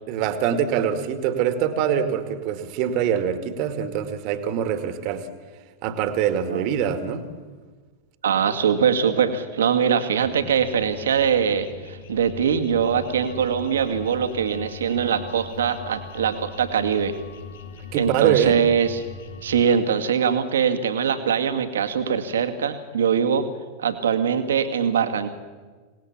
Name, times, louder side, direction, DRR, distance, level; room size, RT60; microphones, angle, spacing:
voice 1, 0.1-5.3 5.8-7.3 17.9-18.7, right 9 dB, 45° right, 10 dB, 2.1 m, -24 dB
voice 2, 8.2-17.1 17.9-19.0 19.4-23.5 23.8-25.4, right 7 dB, 65° right, 8 dB, 2.1 m, -22 dB
sound 1, 10.2-19.7, left 6 dB, 60° left, 2.1 m, -40 dB
25.5 x 19.0 x 7.3 m, 1.4 s
figure-of-eight pair, 90°, 0 cm